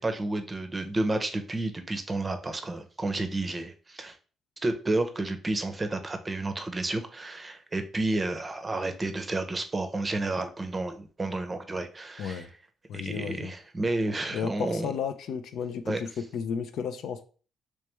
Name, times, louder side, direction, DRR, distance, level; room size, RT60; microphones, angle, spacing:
voice 1, 0.0-4.2 4.6-12.4 12.9-14.9 15.9-16.0, right 2 dB, 25° right, 0.6 m, -31 dB
voice 2, 12.2-12.5 12.9-13.5 14.3-17.2, left 7 dB, 75° left, 0.4 m, -33 dB
3.3 x 3.2 x 3.0 m
cardioid pair, 90°, 0 cm